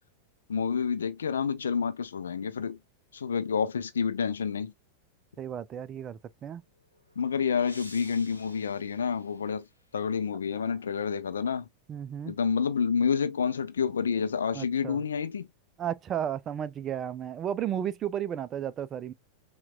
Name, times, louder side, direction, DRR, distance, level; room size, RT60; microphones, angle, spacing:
voice 1, 0.5-2.8 3.1-4.7 7.2-9.7 9.9-11.7 12.3-15.5, left 6 dB, 70° left, 0.4 m, -29 dB
voice 2, 5.4-6.6 10.6-10.7 11.9-12.4 14.5-15.0 15.8-19.1, right 9 dB, 30° right, 0.4 m, -33 dB
sound 1, 6.6-10.0, left 1 dB, 85° left, 0.9 m, -52 dB
5.7 x 2.3 x 2.3 m
figure-of-eight pair, 90°, 0 cm